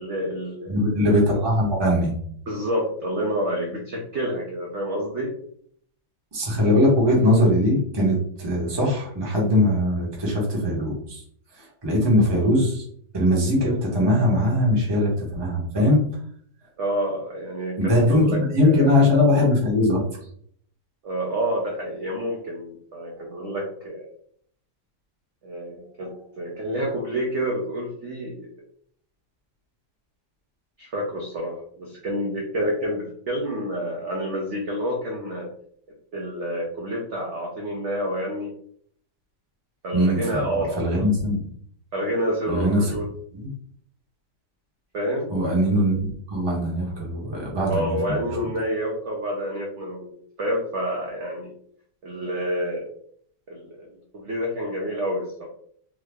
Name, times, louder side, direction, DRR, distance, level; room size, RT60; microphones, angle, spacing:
voice 1, 0.0-0.7 2.5-5.3 16.8-18.9 21.0-24.1 25.4-28.5 30.8-35.5 36.1-38.5 39.8-41.0 41.9-43.1 44.9-45.3 47.7-50.1 50.4-51.5 52.0-52.9 53.5-53.9 54.1-55.5, equal, 60° right, -2 dB, 0.7 m, -28 dB
voice 2, 0.7-2.1 6.3-11.2 11.5-12.8 13.1-16.0 17.8-20.0 39.9-41.4 42.5-42.9 43.3-43.5 45.3-48.3, left 1 dB, 20° right, -3 dB, 0.7 m, -21 dB
3.6 x 2.0 x 3.4 m, 0.62 s
omnidirectional pair, 1.8 m